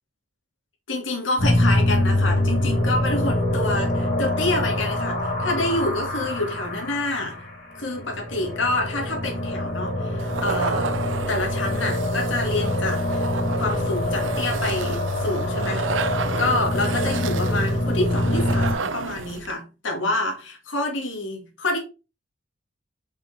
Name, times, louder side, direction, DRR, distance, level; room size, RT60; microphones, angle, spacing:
voice 1, 0.9-7.4 7.8-11.0 11.3-13.3 13.6-21.8, left 2 dB, 80° left, 2.1 m, -28 dB
sound 1, 1.4-18.7, left 1 dB, 50° left, 3.0 m, -25 dB
sound 2, 10.2-19.5, right 5 dB, 75° right, 0.6 m, -32 dB
5.3 x 5.3 x 4.1 m
head